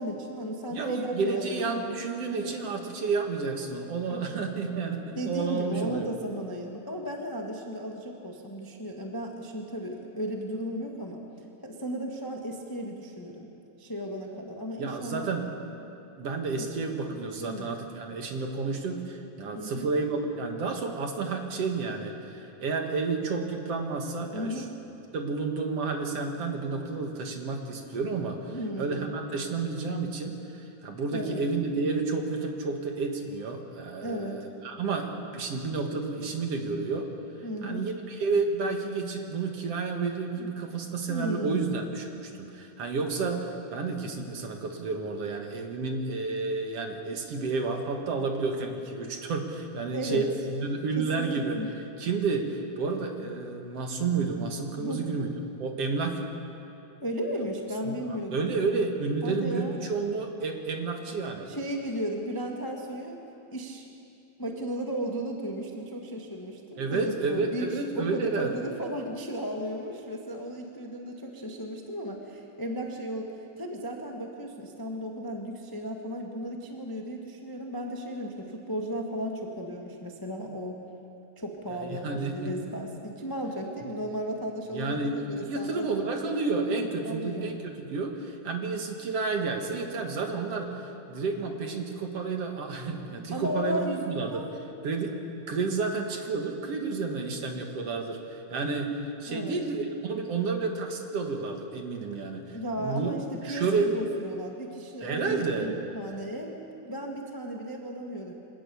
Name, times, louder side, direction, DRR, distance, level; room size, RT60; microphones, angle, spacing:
voice 1, 0.0-1.9 2.3-2.5 4.1-4.3 5.1-11.2 11.6-13.5 13.8-15.3 16.6-16.7 17.1-17.8 19.5-19.9 24.3-24.7 28.5-29.2 31.1-31.4 33.9-34.5 37.4-37.9 40.4-40.5 41.1-41.9 49.9-50.3 50.9-51.7 54.8-55.1 57.0-58.5 59.2-59.8 61.5-63.2 63.5-63.9 64.4-73.3 73.6-80.8 81.4-86.0 87.0-87.6 93.3-94.5 99.3-99.6 102.4-106.6 106.8-108.3, equal, 20° left, 1 dB, 0.6 m, -35 dB
voice 2, 0.7-6.1 14.8-15.5 16.2-24.6 25.1-37.1 37.6-51.6 52.0-55.3 55.6-56.2 57.9-58.0 58.3-61.5 66.8-68.5 81.7-82.5 84.7-94.4 94.8-95.1 95.5-98.9 99.2-103.1 103.4-103.9 105.0-105.8, right 4 dB, 55° right, 3 dB, 2.4 m, -31 dB
25.0 x 18.0 x 7.0 m, 2.8 s
omnidirectional pair, 3.6 m